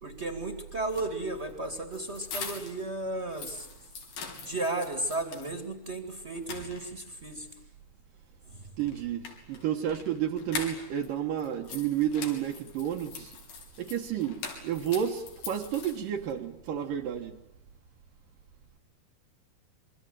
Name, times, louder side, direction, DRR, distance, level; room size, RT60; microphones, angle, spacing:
voice 1, 0.0-3.7 4.4-7.5 8.4-8.7, right 2 dB, 25° right, 7 dB, 1.7 m, -34 dB
sound 1, 0.8-2.9 3.2-5.5 5.9-6.0 6.4-7.2 8.8-11.1 11.4-16.3, left 5 dB, 85° left, 5.4 m, -42 dB
voice 2, 8.8-13.3 13.8-17.4, right 10 dB, 70° right, 2 dB, 2.7 m, -31 dB
26.5 x 23.0 x 9.1 m, 0.86 s
omnidirectional pair, 4.5 m